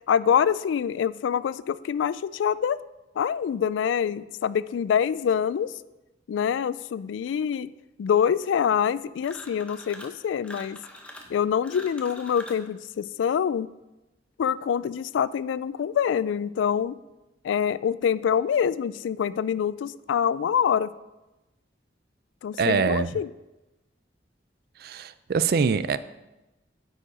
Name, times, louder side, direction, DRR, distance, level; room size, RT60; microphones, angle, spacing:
voice 1, 0.0-2.8 3.2-5.7 6.3-7.7 8.0-10.8 11.3-13.7 14.4-17.0 17.4-20.9 22.4-23.3, left 8 dB, 90° left, 18 dB, 0.3 m, -25 dB
sound 1, 9.2-10.2 10.4-12.7, left 1 dB, 5° left, 0.7 m, -44 dB
voice 2, 22.6-23.1 24.8-26.0, right 5 dB, 55° right, 14 dB, 0.3 m, -24 dB
8.7 x 4.9 x 5.0 m, 1.0 s
head